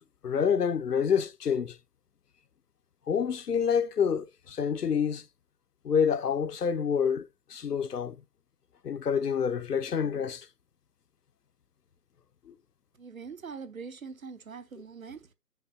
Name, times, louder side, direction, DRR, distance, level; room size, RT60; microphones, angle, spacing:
voice 1, 0.2-1.8 3.1-5.3 5.8-8.2 8.8-10.5 12.5-12.6, left 7 dB, 70° left, 0.7 m, -27 dB
voice 2, 13.0-15.3, right 5 dB, 55° right, 0.9 m, -43 dB
7.8 x 6.0 x 2.7 m
figure-of-eight pair, 160°, 48 cm